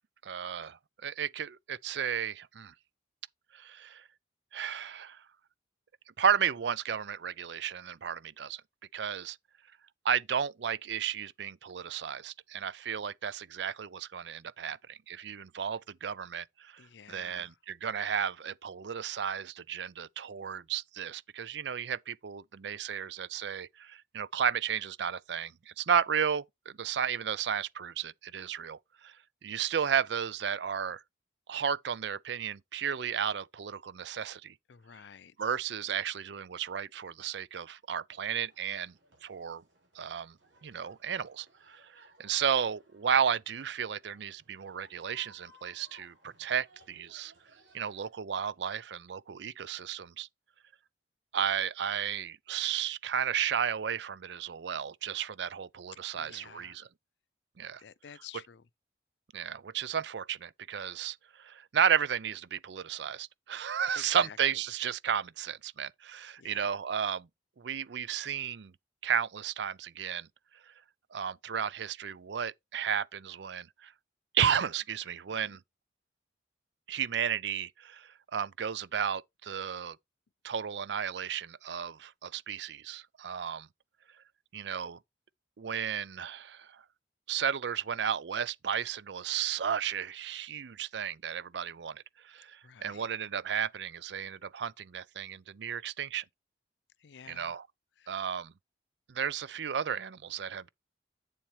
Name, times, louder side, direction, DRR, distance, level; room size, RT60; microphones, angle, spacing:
voice 1, 0.2-2.7 3.5-4.0 4.5-5.2 6.2-8.6 8.9-9.4 10.0-16.8 17.1-29.1 29.4-31.0 31.5-34.5 35.4-38.9 39.2-39.6 40.0-40.3 40.6-47.3 47.7-50.3 51.3-56.9 57.6-57.8 59.3-67.3 67.6-68.7 69.0-70.3 71.1-73.9 74.3-75.6 76.9-80.0 80.4-83.7 84.5-85.0 85.6-86.8 87.3-96.2 97.3-97.7 98.1-98.5 99.1-100.7, right 8 dB, 65° right, 0.5 m, -33 dB
voice 2, 16.8-17.6 34.7-35.3 56.1-56.9 57.8-58.6 64.0-64.4 66.4-66.7 92.6-93.1 97.0-97.6 98.0-98.1, left 8 dB, 70° left, 0.5 m, -51 dB
sound 1, 38.1-48.1, right 1 dB, 85° right, 5.1 m, -62 dB
8.6 x 7.3 x 3.1 m
head